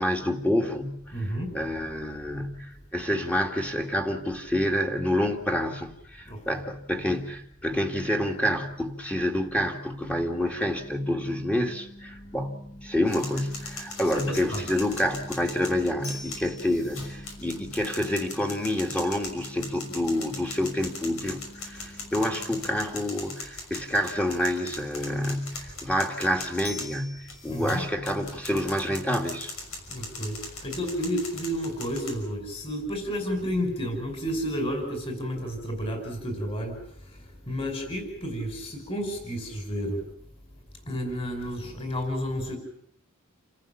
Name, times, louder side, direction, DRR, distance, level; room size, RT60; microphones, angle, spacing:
voice 1, 0.0-29.5, left 1 dB, 5° left, 2 dB, 2.3 m, -28 dB
voice 2, 1.1-1.6 6.3-6.4 14.1-14.6 27.5-27.8 29.9-40.1 40.9-42.6, equal, 25° left, 5 dB, 5.4 m, -31 dB
sound 1, 10.6-23.0, equal, 50° left, 6.3 m, -48 dB
sound 2, 13.1-32.2, left 3 dB, 75° left, 6.0 m, -40 dB
28.5 x 14.5 x 8.6 m, 0.69 s
head